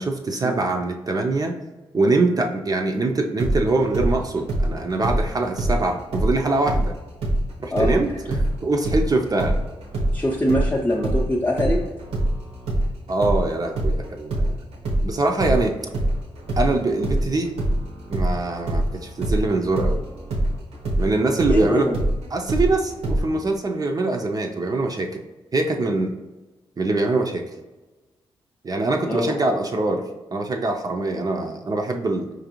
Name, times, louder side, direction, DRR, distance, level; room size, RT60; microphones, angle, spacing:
voice 1, 0.0-1.6 1.9-6.9 7.6-9.6 13.1-14.6 15.0-15.8 16.6-17.5 18.1-20.0 21.0-21.9 22.3-25.2 25.5-26.1 26.8-27.4 28.6-30.0 30.3-32.3, right 2 dB, 35° right, 2 dB, 0.4 m, -23 dB
sound 1, 3.4-6.9 7.2-15.1 15.4-23.2, right 1 dB, 85° right, 0.7 m, -24 dB
voice 2, 10.1-11.8 21.5-22.0 29.0-29.4, equal, 15° left, -3 dB, 0.5 m, -23 dB
4.5 x 2.5 x 2.9 m, 1.2 s
supercardioid pair, 55°, 10 cm